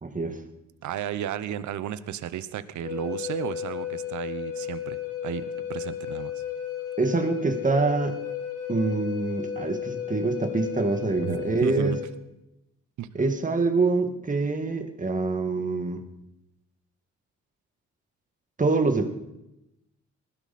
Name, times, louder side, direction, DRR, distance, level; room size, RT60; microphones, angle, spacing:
voice 1, 0.0-0.4 7.0-8.2 8.7-12.0 13.1-16.0 18.6-19.1, right 3 dB, 25° right, 6 dB, 2.0 m, -25 dB
voice 2, 0.8-5.4 5.7-6.4 11.2-12.0 13.0-13.1, right 10 dB, 75° right, 13 dB, 1.0 m, -33 dB
Wind instrument woodwind instrument, 2.8-12.1, left 9 dB, 60° left, 4.1 m, -34 dB
20.0 x 15.5 x 4.3 m, 0.91 s
cardioid pair, 90°, 30 cm